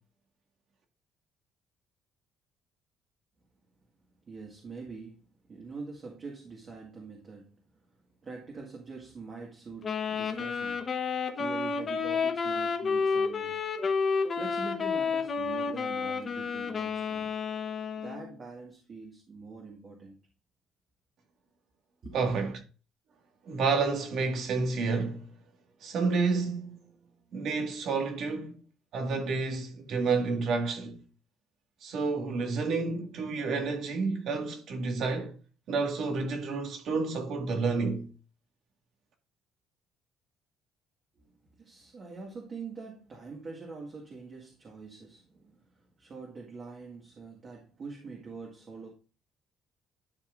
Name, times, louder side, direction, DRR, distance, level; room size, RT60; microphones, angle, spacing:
voice 1, 4.2-7.6 8.2-13.7 14.4-17.3 18.0-20.2 22.0-22.3 41.2-48.9, right 4 dB, 35° right, 1.8 m, -44 dB
Wind instrument woodwind instrument, 9.8-18.3, left 5 dB, 30° left, 1.1 m, -30 dB
voice 2, 22.1-22.6 23.5-25.3 25.8-26.8 27.3-28.6 28.9-31.0 31.8-35.4 35.7-38.1, right 4 dB, 55° right, 1.9 m, -30 dB
11.5 x 5.5 x 2.5 m
cardioid pair, 160°, 0 cm